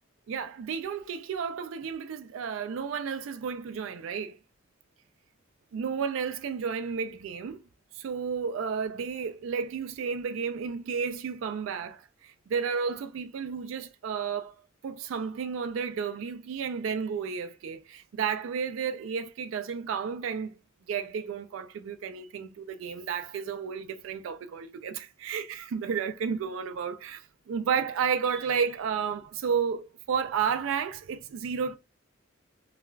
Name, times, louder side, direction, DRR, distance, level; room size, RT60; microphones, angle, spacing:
voice 1, 0.3-4.4 5.7-7.6 7.9-20.6 20.9-31.8, right 6 dB, 75° right, 0.3 m, -32 dB
2.3 x 2.2 x 3.1 m
head